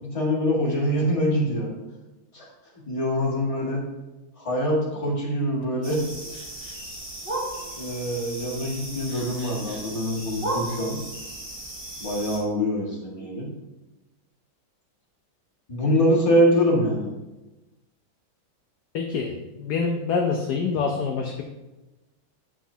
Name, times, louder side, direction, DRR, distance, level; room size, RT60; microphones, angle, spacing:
voice 1, 0.0-1.7 2.3-2.5 2.8-3.8 4.4-6.0 7.8-11.0 12.0-13.5 15.7-17.1, equal, 15° left, -5 dB, 1.7 m, -24 dB
sound 1, 5.8-12.4, right 1 dB, 30° right, 1.4 m, -35 dB
voice 2, 18.9-19.3 19.6-21.4, left 5 dB, 70° left, 2 dB, 1.0 m, -25 dB
8.8 x 6.2 x 2.7 m, 1.1 s
omnidirectional pair, 2.2 m